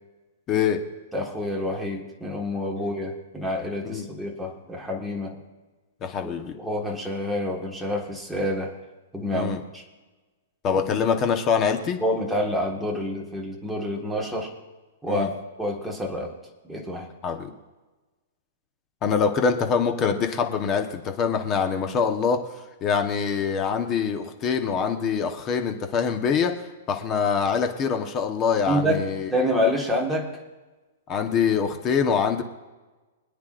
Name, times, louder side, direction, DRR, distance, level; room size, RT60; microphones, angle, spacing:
voice 1, 0.5-0.8 3.8-4.1 6.0-6.5 9.3-9.6 10.6-12.0 15.1-15.3 17.2-17.5 19.0-22.4 22.8-26.6 26.9-29.3 31.1-32.4, left 6 dB, 20° left, 5 dB, 1.1 m, -24 dB
voice 2, 1.1-5.4 6.2-8.8 9.1-9.8 10.9-11.0 12.0-14.5 15.0-15.3 15.6-16.4 16.6-17.1 28.6-30.4, left 1 dB, ahead, -2 dB, 1.6 m, -28 dB
25.5 x 9.6 x 2.5 m, 1.2 s
hypercardioid pair, 165°, 0 cm